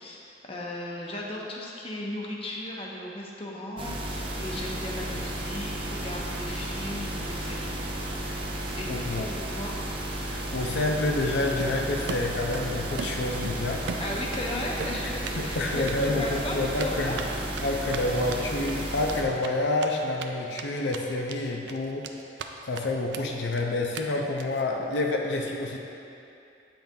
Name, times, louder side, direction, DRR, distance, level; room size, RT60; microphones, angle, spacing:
voice 1, 0.0-7.7 8.8-8.9 9.2-9.7 14.0-17.2, left 1 dB, 35° left, -2 dB, 0.8 m, -36 dB
sound 1, 3.8-19.2, right 1 dB, 30° right, 0.6 m, -33 dB
voice 2, 8.9-9.3 10.3-14.0 15.4-17.2 17.6-22.1 22.6-25.8, left 2 dB, 85° left, 1 dB, 0.6 m, -28 dB
Run, 11.6-12.7 13.0-14.5 14.8-15.4 15.7-15.9 16.8-20.3 20.6-20.7 20.9-21.4 21.7-22.5 22.7-22.8 23.1-23.2 23.5-23.6 23.9-24.0 24.4-24.6, right 5 dB, 80° right, 0.4 m, -37 dB
8.6 x 5.8 x 2.7 m, 2.6 s
head